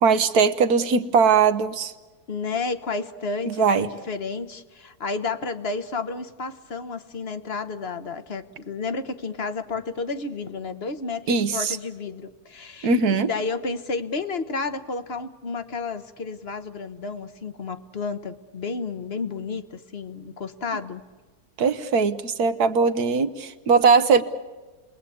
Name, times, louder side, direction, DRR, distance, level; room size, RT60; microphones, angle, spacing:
voice 1, 0.0-1.9 3.5-3.9 11.3-11.8 12.8-13.3 21.6-24.2, right 5 dB, 80° right, 11 dB, 1.5 m, -20 dB
voice 2, 2.3-21.0, left 4 dB, 45° left, 10 dB, 1.2 m, -31 dB
30.0 x 21.0 x 8.6 m, 1.3 s
omnidirectional pair, 1.6 m